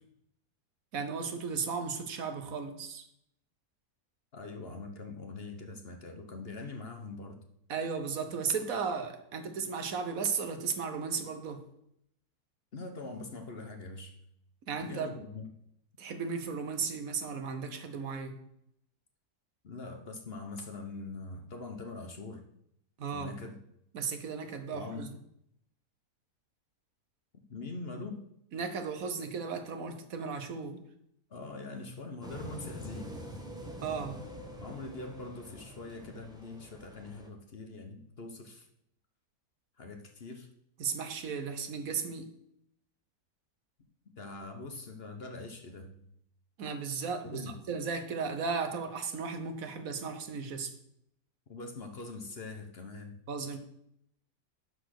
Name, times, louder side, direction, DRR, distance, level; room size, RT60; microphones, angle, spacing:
voice 1, 0.9-3.0 7.7-11.6 14.7-15.1 16.0-18.4 23.0-23.3 23.9-25.1 28.5-30.8 33.8-34.2 40.8-42.3 46.6-50.7 53.3-53.6, right 5 dB, 65° right, 8 dB, 1.3 m, -35 dB
voice 2, 4.3-7.4 12.7-14.2 14.8-15.5 19.6-22.4 23.1-23.6 24.7-25.1 27.5-28.2 31.3-33.2 34.6-38.7 39.8-40.5 44.2-46.0 47.2-47.5 51.5-53.2 53.5-53.6, left 3 dB, 45° left, 5 dB, 1.0 m, -43 dB
sound 1, 32.2-37.3, equal, 5° right, 1.1 m, -45 dB
11.0 x 4.2 x 6.5 m, 0.75 s
omnidirectional pair, 1.6 m